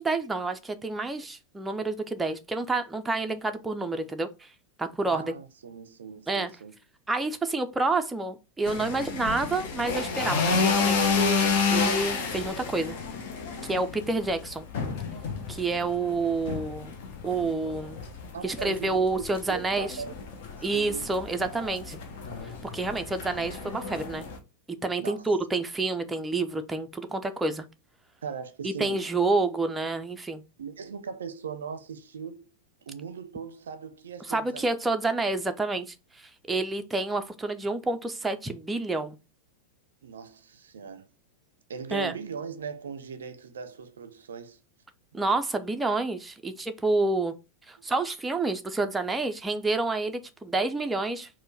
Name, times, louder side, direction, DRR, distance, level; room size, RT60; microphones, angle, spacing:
voice 1, 0.0-4.3 4.8-5.3 6.3-6.5 7.1-13.0 13.7-14.7 15.5-16.9 17.2-18.0 18.4-19.9 20.6-22.0 22.7-24.3 24.7-27.7 28.6-30.4 34.3-39.2 41.9-42.2 45.1-47.3 47.7-51.3, right 3 dB, 10° right, 0.4 m, -29 dB
voice 2, 5.1-6.7 18.3-20.1 20.5-21.1 21.4-21.5 25.0-25.3 28.2-29.1 30.6-32.5 32.8-34.7 40.0-41.1 41.7-44.6 47.8-47.9, right 6 dB, 65° right, 0.5 m, -39 dB
sound 1, 8.7-24.4, left 4 dB, 50° left, 0.8 m, -30 dB
4.4 x 2.1 x 4.2 m
figure-of-eight pair, 90°, 0 cm